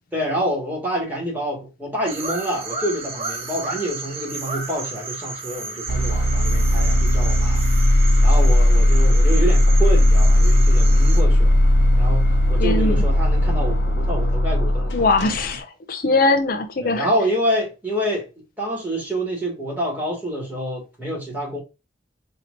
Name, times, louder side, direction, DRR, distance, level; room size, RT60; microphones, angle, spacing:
voice 1, 0.1-7.6 8.2-11.6 12.0-12.2 12.5-15.1 16.8-18.3 18.6-21.6, equal, 10° right, 1.8 m, -27 dB
sound 1, 2.1-11.2, right 3 dB, 30° right, 0.7 m, -33 dB
sound 2, 5.9-15.6, left 1 dB, 85° left, 0.8 m, -17 dB
voice 2, 12.6-13.0 14.9-17.1, left 3 dB, 50° left, 0.4 m, -21 dB
4.4 x 2.8 x 2.6 m
head